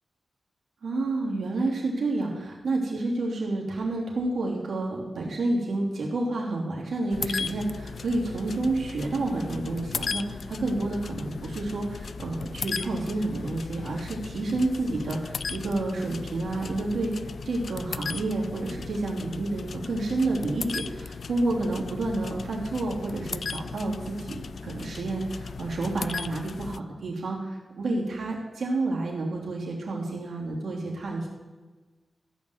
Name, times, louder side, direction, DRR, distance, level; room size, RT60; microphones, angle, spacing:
voice 1, 0.8-31.3, right 2 dB, 80° right, -2 dB, 3.1 m, -29 dB
sound 1, 7.1-26.8, left 5 dB, 70° left, 0.3 m, -37 dB
14.5 x 5.5 x 8.2 m, 1.3 s
wide cardioid pair, 80°, 0 cm